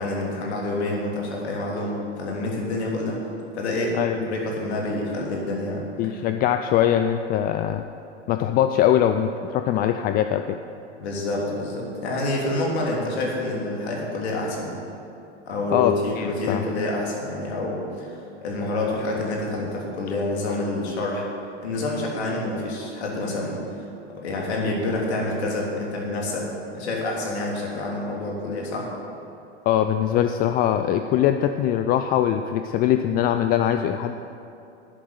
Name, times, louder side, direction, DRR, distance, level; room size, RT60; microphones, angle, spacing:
voice 1, 0.0-3.2 3.5-4.0 4.3-5.8 11.0-14.8 15.5-21.3 21.6-28.9, left 2 dB, 70° left, -2 dB, 3.2 m, -27 dB
voice 2, 3.9-4.4 6.0-7.8 8.3-10.6 15.7-16.6 29.7-34.2, left 10 dB, 25° left, 8 dB, 0.4 m, -22 dB
11.0 x 7.8 x 8.1 m, 2.7 s
hypercardioid pair, 100°, 35 cm